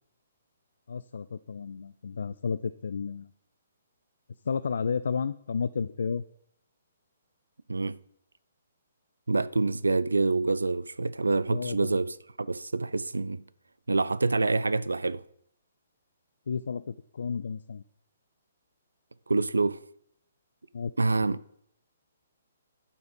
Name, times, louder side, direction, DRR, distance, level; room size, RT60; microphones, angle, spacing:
voice 1, 0.9-3.3 4.4-6.2 11.5-12.0 16.5-17.8 20.7-20.9 21.2-21.3, left 6 dB, 60° left, 0.3 m, -32 dB
voice 2, 9.3-13.4 13.9-15.2 19.3-19.8 21.0-21.4, right 3 dB, 75° right, 0.4 m, -26 dB
11.0 x 5.6 x 5.2 m
figure-of-eight pair, 125°, 0 cm